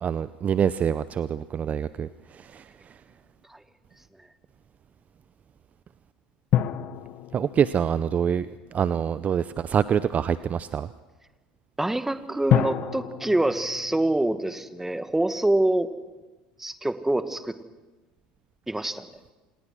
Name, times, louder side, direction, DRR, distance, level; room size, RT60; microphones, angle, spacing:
voice 1, 0.0-2.7 7.3-10.9, right 8 dB, 35° right, 15 dB, 0.6 m, -26 dB
sound 1, 6.5-9.1 12.5-15.1 15.4-15.5, left 11 dB, 50° left, 1.1 m, -29 dB
voice 2, 11.8-15.9 16.6-17.6 18.7-19.1, right 1 dB, 10° right, 10 dB, 1.8 m, -25 dB
27.0 x 19.5 x 6.3 m, 1.2 s
hypercardioid pair, 80°, 4 cm